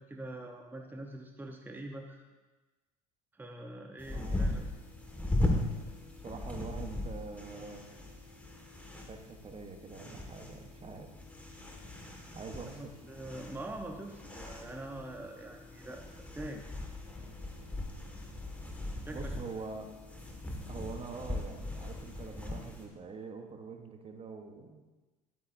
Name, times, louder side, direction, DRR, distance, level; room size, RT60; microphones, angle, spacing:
voice 1, 0.0-2.2 3.3-4.6 12.7-16.6 19.1-19.4, right 1 dB, 10° right, 2 dB, 0.9 m, -44 dB
sound 1, 4.0-22.9, left 1 dB, 5° left, 1.7 m, -39 dB
voice 2, 4.1-4.6 6.2-7.9 9.1-11.2 12.3-12.9 19.1-19.9 20.7-24.8, right 4 dB, 30° right, 5 dB, 1.1 m, -45 dB
10.5 x 8.9 x 2.6 m, 1.2 s
hypercardioid pair, 75°, 19 cm